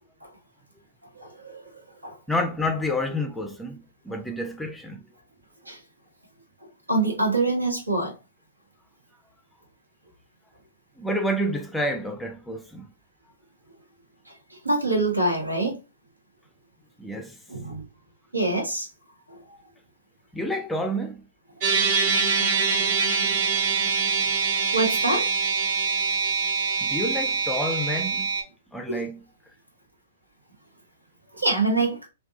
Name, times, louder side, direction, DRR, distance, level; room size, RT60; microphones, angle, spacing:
voice 1, 1.1-1.7 2.0-2.1 5.7-5.8 6.9-8.2 14.5-15.8 17.5-17.8 18.3-18.9 19.3-19.4 24.7-25.3 28.9-29.1 31.3-32.0, right 2 dB, 90° right, 1.1 m, -25 dB
voice 2, 2.3-5.0 11.0-12.9 17.0-17.4 20.3-21.2 26.8-28.3 28.7-29.2, left 1 dB, 5° left, 0.4 m, -29 dB
sound 1, 21.6-28.4, right 5 dB, 45° right, 0.9 m, -24 dB
3.5 x 2.2 x 2.5 m
figure-of-eight pair, 115°, 0 cm